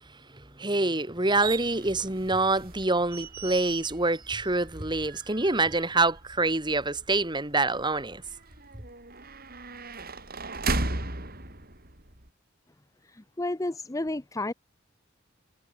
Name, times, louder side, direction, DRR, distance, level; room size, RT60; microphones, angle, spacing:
voice 1, 0.3-8.2, right 2 dB, 20° right, 2.5 m, -26 dB
sound 1, 1.4-12.3, right 3 dB, 50° right, 7.9 m, -37 dB
voice 2, 13.1-14.5, left 2 dB, 15° left, 0.7 m, -31 dB
head